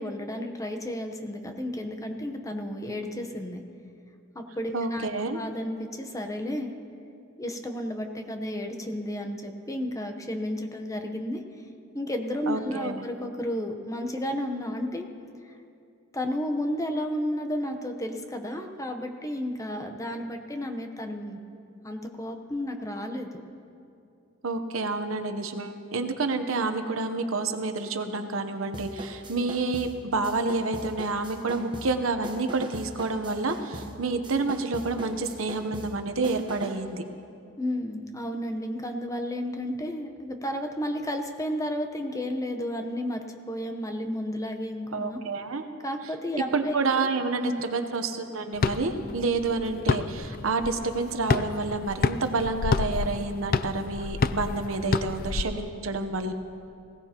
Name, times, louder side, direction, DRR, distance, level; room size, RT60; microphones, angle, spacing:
voice 1, 0.0-3.6 4.3-5.1 5.3-6.7 7.4-11.4 11.9-15.1 15.4-15.5 16.1-21.4 21.8-23.4 37.6-45.2 45.8-46.8 47.4-47.7, left 1 dB, 15° left, 4 dB, 0.9 m, -32 dB
voice 2, 4.7-5.4 12.5-13.0 24.4-37.0 44.9-45.6 46.5-56.3, right 3 dB, 85° right, 7 dB, 0.9 m, -29 dB
sound 1, 28.7-36.9, right 1 dB, 25° right, 1.0 m, -41 dB
sound 2, 48.6-55.4, left 4 dB, 45° left, 0.4 m, -29 dB
20.0 x 16.5 x 2.9 m, 2.5 s
head